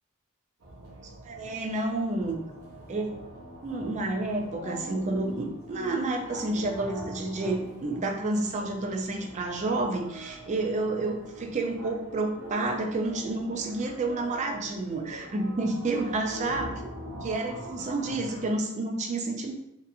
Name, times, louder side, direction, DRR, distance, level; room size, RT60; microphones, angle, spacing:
sound 1, 0.6-18.6, equal, 85° right, 0.7 m, -43 dB
voice 1, 1.2-2.4 2.9-3.2 3.6-16.8 17.2-19.5, right 2 dB, 35° right, 2 dB, 0.4 m, -30 dB
2.7 x 2.4 x 2.6 m, 0.83 s
head